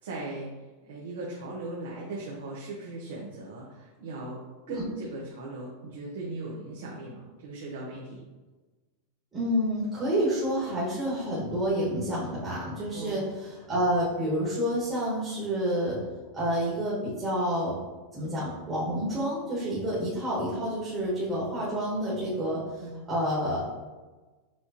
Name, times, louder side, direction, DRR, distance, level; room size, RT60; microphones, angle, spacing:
voice 1, 0.0-8.2 12.9-13.3 21.4-21.5 22.8-23.1, right 2 dB, 85° right, -3 dB, 0.9 m, -38 dB
voice 2, 9.3-16.0 16.3-17.8 18.1-23.6, equal, 20° right, -8 dB, 1.2 m, -29 dB
6.1 x 3.1 x 2.8 m, 1.2 s
supercardioid pair, 165°, 0 cm